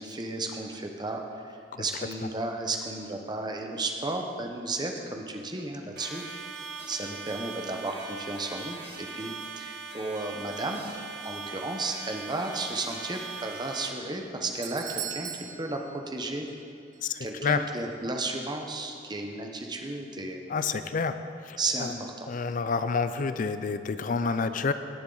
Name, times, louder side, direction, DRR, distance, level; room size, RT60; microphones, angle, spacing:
voice 1, 0.0-6.5 6.9-10.8 11.2-16.5 17.2-20.4 21.6-22.3, right 2 dB, 25° right, 3 dB, 0.9 m, -34 dB
sound 1, 6.0-13.9, right 4 dB, 60° right, 1.7 m, -40 dB
Doorbell, 14.1-16.7 16.9-17.0 17.8-17.9, right 9 dB, 45° right, 0.6 m, -40 dB
voice 2, 17.0-17.7 20.5-22.0 22.3-24.7, left 5 dB, 45° left, 11 dB, 0.4 m, -29 dB
17.5 x 7.3 x 3.9 m, 2.5 s
head